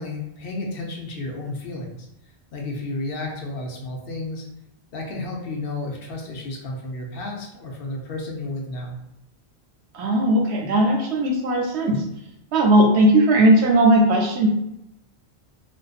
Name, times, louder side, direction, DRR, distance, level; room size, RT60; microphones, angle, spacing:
voice 1, 0.0-2.1 2.5-4.4 4.9-8.9, left 2 dB, 65° left, 0 dB, 0.7 m, -32 dB
voice 2, 9.9-12.0 12.5-14.5, right 1 dB, 90° right, 1 dB, 0.9 m, -17 dB
2.6 x 2.2 x 2.4 m, 0.84 s
omnidirectional pair, 1.1 m